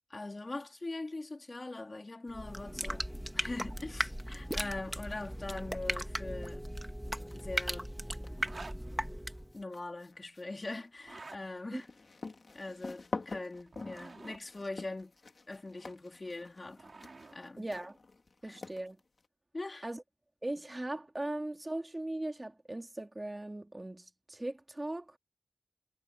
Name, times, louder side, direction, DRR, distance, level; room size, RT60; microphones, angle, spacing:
voice 1, 0.1-3.1 3.3-6.6 7.3-7.9 9.5-11.9 12.5-15.1 15.5-16.9 17.3-17.7 18.4-18.6 19.5-19.9, left 2 dB, 45° left, 3.6 m, -42 dB
sound 1, 2.3-9.6, equal, 5° right, 1.6 m, -37 dB
sound 2, 7.3-7.7 8.1-19.3, left 3 dB, 70° left, 2.8 m, -46 dB
sound 3, 8.4-8.8 10.9-11.4 13.5-14.4 16.3-17.4, right 3 dB, 60° right, 4.2 m, -49 dB
voice 2, 17.6-18.0 18.4-19.0 19.8-20.0 20.4-25.2, right 1 dB, 30° right, 2.9 m, -39 dB
wide cardioid pair, 55°, 0 cm